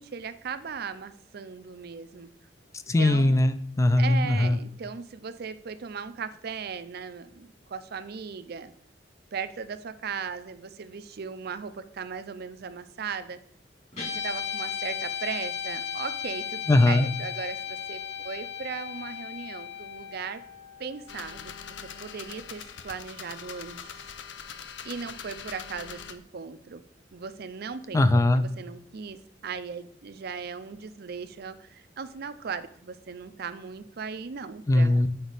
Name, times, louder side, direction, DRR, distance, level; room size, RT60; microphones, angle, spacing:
voice 1, 0.0-2.3 3.0-3.4 4.0-8.7 9.3-13.4 14.1-20.4 20.8-21.5 22.0-23.9 24.8-26.8 27.1-28.0 28.4-35.1, right 6 dB, 60° right, 11 dB, 0.5 m, -37 dB
voice 2, 2.9-4.6 16.7-17.1 27.9-28.4 34.7-35.1, left 2 dB, 15° left, 12 dB, 0.4 m, -20 dB
Guitar, 13.9-22.4, left 8 dB, 40° left, 3.4 m, -36 dB
sound 1, 21.1-26.1, left 7 dB, 80° left, 0.6 m, -42 dB
7.9 x 5.1 x 4.0 m, 0.64 s
head